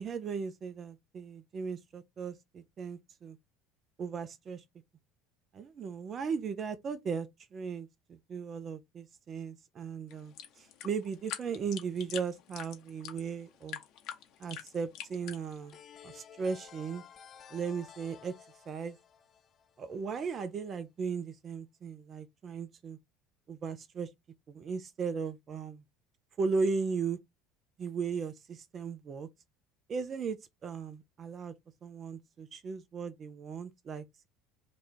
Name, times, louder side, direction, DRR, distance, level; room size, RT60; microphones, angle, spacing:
voice 1, 0.0-3.4 4.0-4.6 5.5-13.8 14.4-15.8 16.0-17.0 17.5-18.3 18.7-19.0 19.8-23.0 23.5-24.1 24.5-25.8 26.4-27.2 27.8-29.3 29.9-30.4 30.6-31.5 31.8-34.3, right 5 dB, 40° right, 0.6 m, -37 dB
sound 1, 10.1-15.8, left 10 dB, 60° left, 0.9 m, -44 dB
sound 2, 15.7-20.4, left 8 dB, 40° left, 0.4 m, -54 dB
3.1 x 2.4 x 4.3 m
hypercardioid pair, 75°, 0 cm